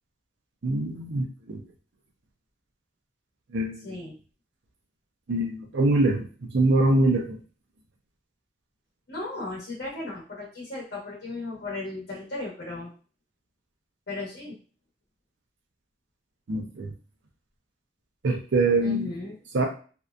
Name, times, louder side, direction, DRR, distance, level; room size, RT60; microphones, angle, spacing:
voice 1, 0.6-1.6 3.5-4.0 5.3-7.4 16.5-16.9 18.2-19.1 19.5-19.7, right 2 dB, 90° right, 2 dB, 0.5 m, -24 dB
voice 2, 3.8-4.2 9.1-12.9 14.1-14.6 18.8-19.4, left 2 dB, 70° left, -4 dB, 0.9 m, -36 dB
2.6 x 2.2 x 2.4 m, 0.37 s
head